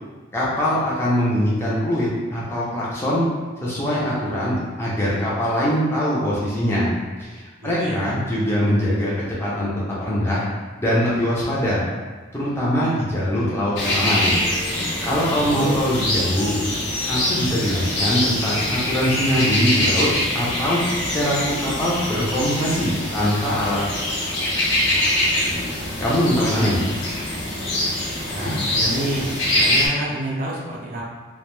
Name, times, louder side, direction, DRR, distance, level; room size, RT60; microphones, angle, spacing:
voice 1, 0.3-3.2 3.6-6.9 7.2-9.1 9.4-9.7 10.1-10.4 10.8-11.8 12.3-14.3 14.7-16.6 17.1-20.1 20.3-20.8 21.1-23.8 26.0-26.8, equal, 10° left, -7 dB, 0.5 m, -22 dB
voice 2, 7.6-8.2 15.4-15.8 28.3-29.3 29.6-31.0, right 1 dB, 45° right, -4 dB, 0.5 m, -28 dB
sound 1, 13.8-29.9, left 1 dB, 70° left, 0.6 m, -24 dB
2.2 x 2.1 x 3.0 m, 1.3 s
head